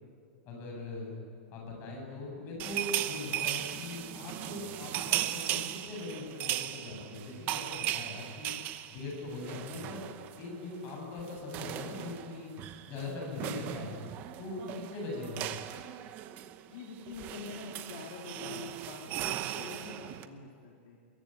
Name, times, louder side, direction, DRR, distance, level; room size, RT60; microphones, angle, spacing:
voice 1, 0.4-1.1 1.5-8.5 8.9-10.0 10.4-12.5 12.9-13.9 14.4-15.5, left 2 dB, 25° left, 0 dB, 8.0 m, -41 dB
sound 1, 2.6-10.5 10.7-10.9 11.2-20.3, right 13 dB, 25° right, 0.9 m, -37 dB
voice 2, 16.7-21.0, left 4 dB, 50° left, -2 dB, 3.5 m, -45 dB
24.5 x 22.5 x 9.4 m, 2.2 s
supercardioid pair, 175°, 7 cm